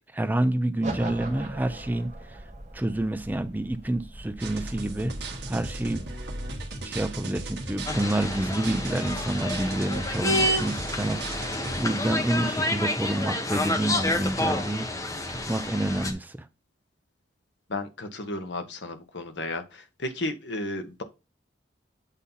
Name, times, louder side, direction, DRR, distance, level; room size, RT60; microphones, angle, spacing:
voice 1, 0.1-2.4 2.7-5.2 5.5-6.1 6.8-14.9 15.3-16.5, right 1 dB, 10° right, 0.4 m, -28 dB
sound 1, 0.8-7.0, right 1 dB, 40° right, 1.3 m, -41 dB
sound 2, 4.4-11.9, right 2 dB, 65° right, 1.4 m, -36 dB
sound 3, 7.9-16.1, left 1 dB, 20° left, 0.8 m, -29 dB
voice 2, 17.7-21.0, left 2 dB, 70° left, 1.1 m, -33 dB
8.3 x 2.8 x 5.4 m
head